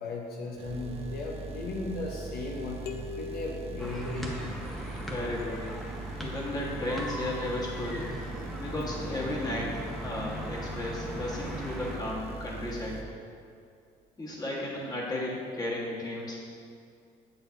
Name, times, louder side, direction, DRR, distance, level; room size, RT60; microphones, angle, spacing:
voice 1, 0.0-2.8 3.1-4.4, left 2 dB, 65° left, -2 dB, 0.9 m, -36 dB
sound 1, 0.6-13.0, right 3 dB, 35° right, 0.7 m, -41 dB
sound 2, 2.9-4.7, left 5 dB, 90° left, 0.6 m, -43 dB
sound 3, 3.8-12.0, equal, ahead, 0.9 m, -39 dB
voice 2, 5.1-5.7 6.2-8.1 8.6-13.0 14.2-16.4, left 1 dB, 25° left, -4 dB, 1.5 m, -34 dB
7.8 x 6.8 x 2.7 m, 2.3 s
cardioid pair, 110°, 17 cm